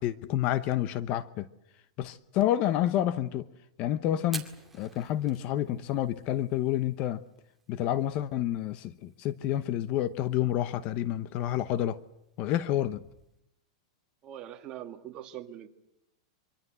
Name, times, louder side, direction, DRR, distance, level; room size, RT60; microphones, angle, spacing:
voice 1, 0.0-1.5 2.0-3.4 3.8-4.4 4.7-7.2 7.7-12.0 12.4-13.0, left 12 dB, 35° left, 0.9 m, -29 dB
Fire, 4.2-13.4, right 3 dB, 5° right, 2.3 m, -51 dB
voice 2, 14.2-15.7, right 11 dB, 30° right, 2.2 m, -42 dB
25.0 x 24.5 x 8.1 m
supercardioid pair, 155°, 3 cm